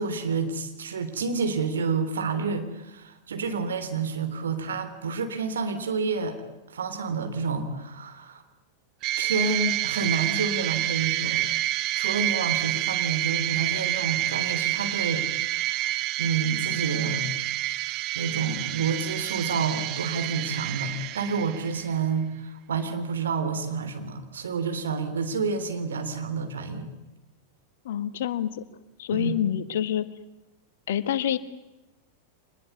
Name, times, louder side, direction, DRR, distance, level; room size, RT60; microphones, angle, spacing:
voice 1, 0.0-6.4 6.7-8.4 9.2-11.4 12.0-15.9 16.2-17.2 18.2-26.9 29.1-29.4, right 5 dB, 65° right, 7 dB, 3.4 m, -29 dB
sound 1, 9.0-21.9, right 16 dB, 40° right, 0.9 m, -28 dB
voice 2, 27.8-28.6 29.0-30.0 30.9-31.4, left 10 dB, 60° left, 14 dB, 1.5 m, -27 dB
25.5 x 20.5 x 9.7 m, 1.0 s
figure-of-eight pair, 90°, 0 cm